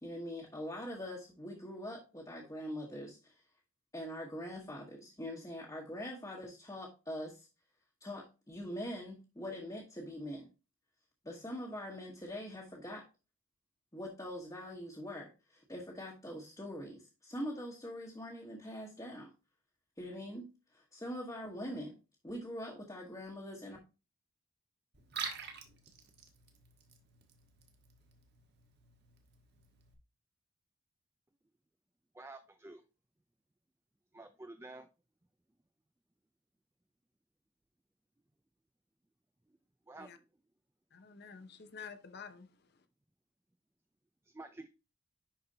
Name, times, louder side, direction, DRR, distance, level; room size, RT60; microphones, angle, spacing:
voice 1, 0.0-3.4 3.9-7.5 8.0-10.5 11.2-13.1 13.9-19.3 20.0-21.9 22.2-23.8, equal, 15° left, 1.2 m, -43 dB
Liquid, 24.9-29.9, right 5 dB, 50° right, 1.3 m, -47 dB
voice 2, 32.1-32.8 34.1-34.9 39.9-40.3 44.2-44.7, right 2 dB, 10° right, 0.3 m, -50 dB
voice 3, 40.9-42.8, left 6 dB, 50° left, 0.7 m, -50 dB
10.5 x 4.2 x 2.8 m
head